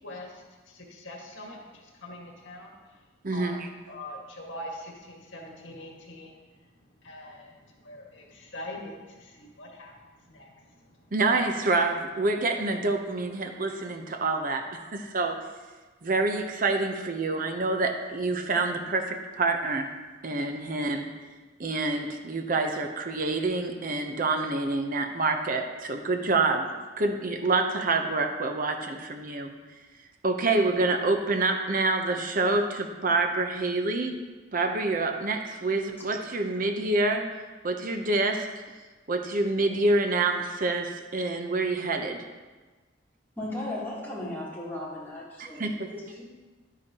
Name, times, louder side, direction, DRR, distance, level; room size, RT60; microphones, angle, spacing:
voice 1, 0.0-3.0 3.3-3.6 3.9-6.7 7.0-11.1, left 1 dB, 75° left, -1 dB, 1.8 m, -43 dB
voice 2, 3.2-3.7 11.1-15.4 16.0-19.9 20.2-21.1 21.6-29.5 30.2-34.1 34.5-37.2 37.6-38.5 39.1-42.2 45.4-45.9, right 3 dB, 45° right, 4 dB, 0.8 m, -27 dB
voice 3, 43.4-46.2, left 1 dB, 10° left, -8 dB, 3.1 m, -36 dB
11.5 x 9.8 x 2.9 m, 1.3 s
head